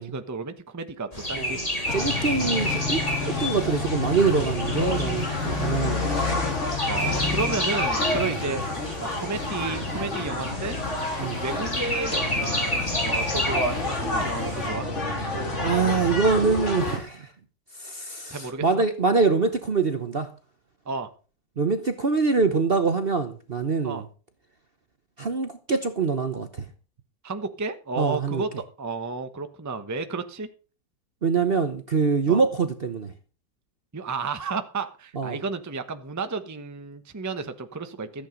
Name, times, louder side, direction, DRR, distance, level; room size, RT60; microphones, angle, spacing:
voice 1, 0.0-1.6 2.4-2.5 6.8-8.6 9.0-10.8 11.2-14.9 18.3-18.8 20.8-21.1 23.8-24.0 27.2-30.5 32.3-32.5 33.9-38.3, right 4 dB, 15° right, 0.8 m, -32 dB
sound 1, 1.1-14.7, left 1 dB, 20° left, 3.9 m, -31 dB
sound 2, 1.8-17.0, left 2 dB, 40° left, 3.3 m, -29 dB
voice 2, 1.9-6.1 11.2-11.4 15.6-17.3 17.8-20.3 21.6-24.0 25.2-26.6 28.0-28.4 31.2-33.1 35.1-35.4, right 4 dB, 40° right, 0.9 m, -24 dB
14.0 x 8.8 x 5.1 m
omnidirectional pair, 1.9 m